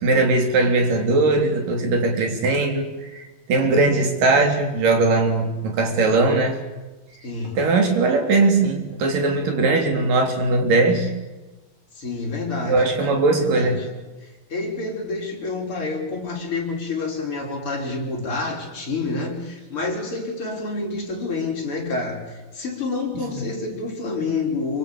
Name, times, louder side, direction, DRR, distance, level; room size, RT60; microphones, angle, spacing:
voice 1, 0.0-6.6 7.5-11.1 12.7-13.8, right 3 dB, 60° right, 4 dB, 5.0 m, -20 dB
voice 2, 7.2-7.7 11.9-12.8 13.4-13.9 14.2-24.8, left 3 dB, 35° left, -1 dB, 6.2 m, -28 dB
27.0 x 24.5 x 7.0 m, 1.1 s
omnidirectional pair, 4.4 m